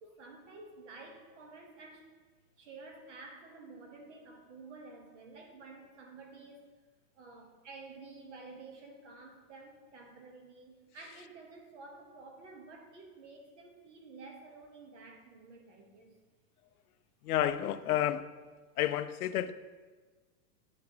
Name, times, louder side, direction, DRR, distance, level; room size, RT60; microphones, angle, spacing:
voice 1, 0.0-2.1 2.6-6.6 7.1-16.2, right 3 dB, 50° right, 3 dB, 1.2 m, -51 dB
voice 2, 17.2-18.3 18.8-19.5, left 12 dB, 65° left, 13 dB, 0.5 m, -30 dB
9.5 x 5.9 x 2.9 m, 1.4 s
supercardioid pair, 180°, 47 cm